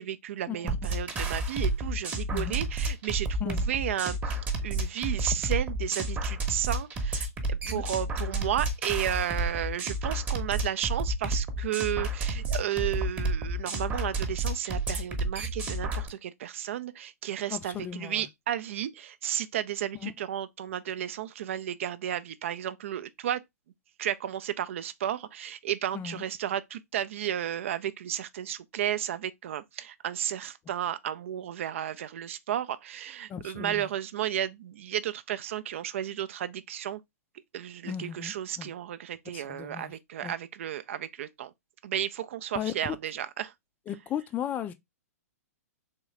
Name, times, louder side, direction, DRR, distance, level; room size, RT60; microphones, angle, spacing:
voice 1, 0.0-23.4 24.0-37.0 37.5-41.5 41.8-43.5, right 11 dB, 55° right, 0.4 m, -33 dB
sound 1, 0.7-16.1, right 2 dB, 15° right, 0.9 m, -30 dB
voice 2, 17.5-18.3 20.0-20.1 25.9-26.2 33.3-33.9 37.8-38.7 39.3-39.9 40.2-40.3 42.6-43.0 43.9-44.7, left 9 dB, 20° left, 0.4 m, -36 dB
3.7 x 3.1 x 3.1 m
figure-of-eight pair, 115°, 9 cm